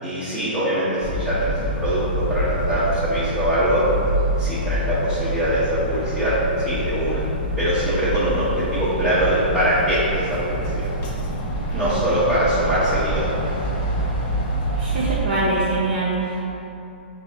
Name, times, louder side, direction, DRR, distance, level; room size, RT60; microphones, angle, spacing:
voice 1, 0.0-3.8 4.4-7.2 7.6-10.9 11.7-13.6, right 1 dB, ahead, -14 dB, 0.9 m, -23 dB
sound 1, 1.0-15.2, right 1 dB, 35° left, 0.7 m, -26 dB
voice 2, 14.8-16.5, right 2 dB, 55° right, -8 dB, 0.7 m, -24 dB
5.1 x 2.7 x 3.2 m, 2.8 s
hypercardioid pair, 125°, 6 cm